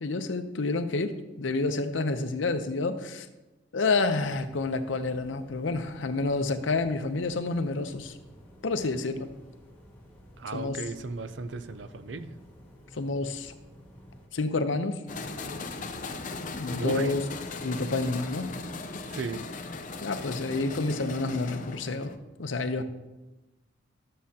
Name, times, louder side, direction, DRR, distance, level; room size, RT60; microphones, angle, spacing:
voice 1, 0.0-1.1 1.4-3.3 3.7-8.1 8.6-9.3 10.5-10.8 12.9-13.5 14.3-15.0 16.6-17.2 17.6-18.5 20.0-22.1 22.4-22.8, left 3 dB, 90° left, 9 dB, 0.7 m, -29 dB
sound 1, 4.2-14.3, equal, 10° left, 1.7 m, -52 dB
voice 2, 10.4-12.3 16.7-17.1 19.1-19.4, right 3 dB, 70° right, 12 dB, 0.5 m, -35 dB
sound 2, 15.1-22.2, left 3 dB, 45° left, 0.6 m, -38 dB
12.5 x 7.5 x 2.8 m, 1.1 s
head